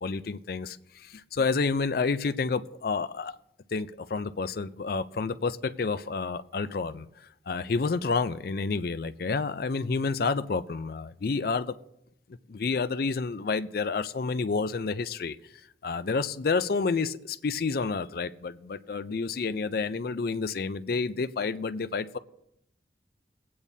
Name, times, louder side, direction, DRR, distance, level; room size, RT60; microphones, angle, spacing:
voice 1, 0.0-3.4 3.7-11.8 12.5-15.4 15.8-22.2, left 4 dB, 55° left, 12 dB, 0.4 m, -29 dB
22.5 x 8.6 x 2.7 m, 0.80 s
head